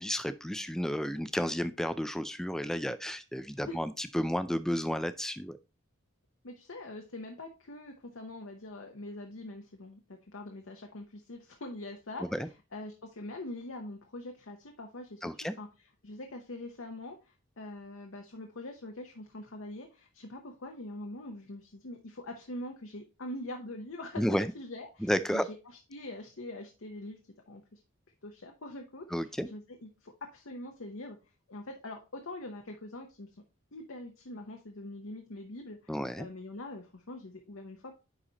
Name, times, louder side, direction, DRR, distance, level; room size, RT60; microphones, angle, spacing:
voice 1, 0.0-5.6 12.3-12.5 15.2-15.5 24.2-24.5 25.0-25.5 29.1-29.5 35.9-36.3, equal, ahead, 12 dB, 0.3 m, -32 dB
voice 2, 6.4-15.2 15.6-27.2 27.5-27.8 28.2-31.2 31.5-33.3 33.7-37.9, left 1 dB, 80° left, 3 dB, 0.9 m, -44 dB
9.8 x 4.2 x 2.9 m, 0.29 s
head